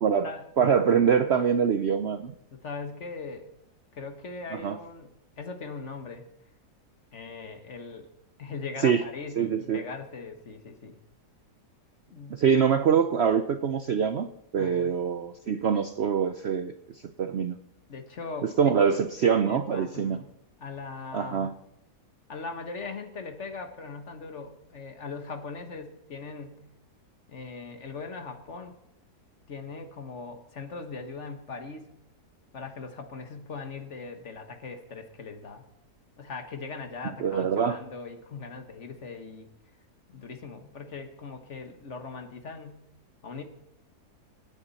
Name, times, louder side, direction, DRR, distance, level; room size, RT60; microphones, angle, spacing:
voice 1, 0.0-2.3 4.5-4.8 8.8-9.0 9.4-9.8 12.3-14.3 14.5-17.6 18.4-20.2 21.1-21.5 37.2-37.8, right 7 dB, 60° right, 9 dB, 0.7 m, -24 dB
voice 2, 2.5-3.5 3.9-6.2 7.1-8.1 8.4-11.0 12.1-12.4 14.6-14.9 17.9-19.0 19.4-20.3 20.6-21.5 22.3-26.6 27.3-28.8 29.5-32.0 32.5-35.6 36.2-39.5 40.1-42.8 43.2-43.4, left 4 dB, 50° left, 6 dB, 1.6 m, -40 dB
26.5 x 9.4 x 4.2 m, 0.79 s
omnidirectional pair, 1.7 m